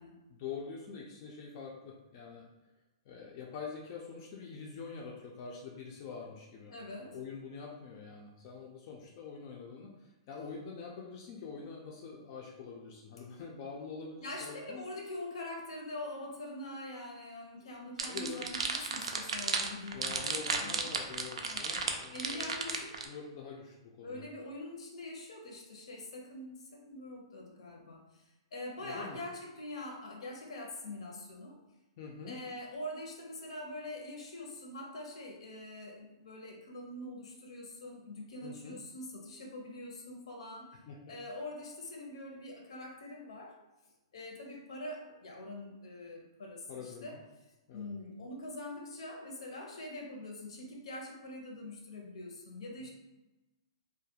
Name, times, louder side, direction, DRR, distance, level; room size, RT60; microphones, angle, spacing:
voice 1, 0.3-2.5 3.1-6.7 7.0-14.9 18.1-18.4 19.9-22.8 23.0-24.2 28.8-29.2 32.0-32.4 38.4-38.8 40.9-41.2 46.7-47.2 47.7-47.9 52.8-52.9, left 5 dB, 40° left, -1 dB, 0.3 m, -45 dB
voice 2, 6.7-7.2 13.2-13.3 14.2-20.9 21.4-21.7 22.1-23.0 24.0-31.6 32.3-40.8 41.1-43.6 44.1-47.2 47.7-52.9, left 1 dB, 80° left, 0 dB, 0.7 m, -44 dB
sound 1, 18.0-23.1, right 4 dB, 90° right, 0.3 m, -34 dB
2.3 x 2.1 x 2.7 m, 1.1 s
hypercardioid pair, 155°, 3 cm